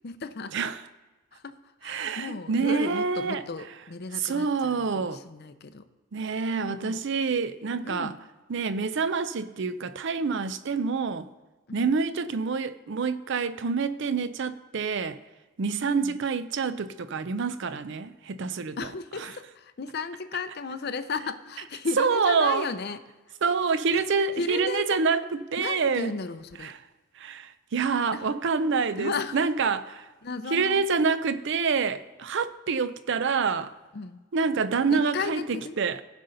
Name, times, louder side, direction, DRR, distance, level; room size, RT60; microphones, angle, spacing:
voice 1, 0.0-0.6 1.3-1.5 1.8-5.9 6.5-7.0 7.8-8.2 11.7-11.9 15.8-16.2 18.8-23.0 23.9-24.1 24.4-25.0 25.6-26.7 28.1-28.4 29.0-29.4 30.2-30.8 33.9-34.2 34.9-35.8, left 4 dB, 50° left, 0.5 m, -34 dB
voice 2, 1.8-3.4 4.1-5.2 6.1-8.1 8.5-11.3 11.7-15.2 15.6-18.8 19.2-19.3 22.0-22.7 23.4-26.1 26.6-26.8 27.2-30.0 30.5-33.7 34.3-36.0, right 5 dB, 55° right, 0.5 m, -27 dB
16.0 x 5.5 x 3.9 m
head